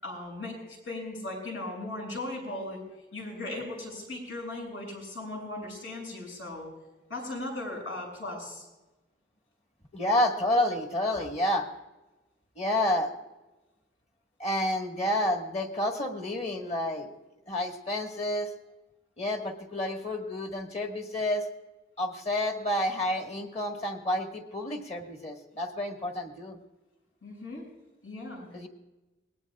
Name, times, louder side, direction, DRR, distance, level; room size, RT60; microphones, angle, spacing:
voice 1, 0.0-2.8 3.1-6.7 7.1-8.7 27.2-27.7 28.0-28.5, left 2 dB, 85° left, -1 dB, 6.9 m, -37 dB
voice 2, 9.9-11.7 12.5-13.1 14.4-17.1 17.5-18.5 19.2-21.5 22.0-26.6 28.5-28.7, left 1 dB, 35° left, 3 dB, 1.6 m, -29 dB
22.0 x 19.5 x 2.4 m, 1.1 s
head